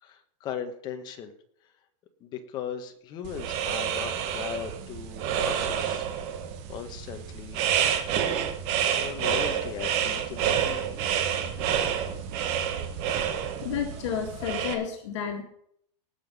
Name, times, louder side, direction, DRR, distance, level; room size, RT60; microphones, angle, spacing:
voice 1, 0.0-1.3 2.2-6.1 6.7-7.6 8.9-10.8, left 8 dB, 25° left, 7 dB, 1.4 m, -38 dB
sound 1, 3.2-14.7, right 9 dB, 35° right, 1.6 m, -29 dB
voice 2, 13.6-15.4, left 7 dB, 60° left, 3 dB, 2.3 m, -31 dB
18.5 x 7.2 x 5.6 m, 0.67 s
supercardioid pair, 170°, 17 cm